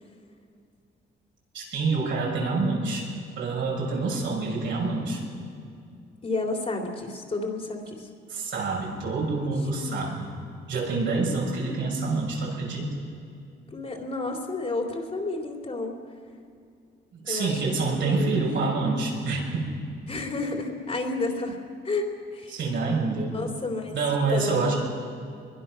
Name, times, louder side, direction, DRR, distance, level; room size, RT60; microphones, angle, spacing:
voice 1, 1.5-3.1 3.4-5.2 8.3-10.3 10.7-13.0 17.1-19.7 22.5-23.4 23.9-24.7, right 3 dB, 70° right, -2 dB, 6.3 m, -27 dB
voice 2, 6.2-8.1 9.8-9.9 13.7-16.0 17.3-17.6 17.9-18.4 20.1-21.6 21.8-24.0 24.3-24.7, left 3 dB, 30° left, 1 dB, 3.5 m, -31 dB
23.0 x 22.0 x 6.2 m, 2.4 s
cardioid pair, 90°, 20 cm